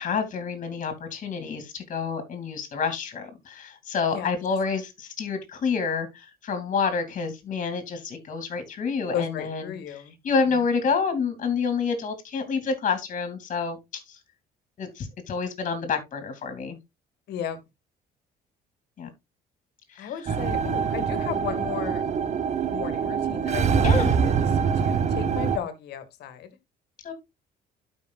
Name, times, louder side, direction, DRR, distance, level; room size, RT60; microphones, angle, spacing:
voice 1, 0.0-14.2 14.8-16.8 19.0-19.1 19.9-20.4 23.8-24.2 27.0-27.1, left 5 dB, 50° left, 2.6 m, -28 dB
voice 2, 9.1-10.1 17.3-17.6 20.0-22.0 22.7-24.4 24.8-26.5, left 9 dB, 75° left, 1.7 m, -34 dB
sound 1, 20.3-25.6, right 6 dB, 40° right, 0.7 m, -24 dB
12.5 x 5.5 x 2.4 m
cardioid pair, 110°, 17 cm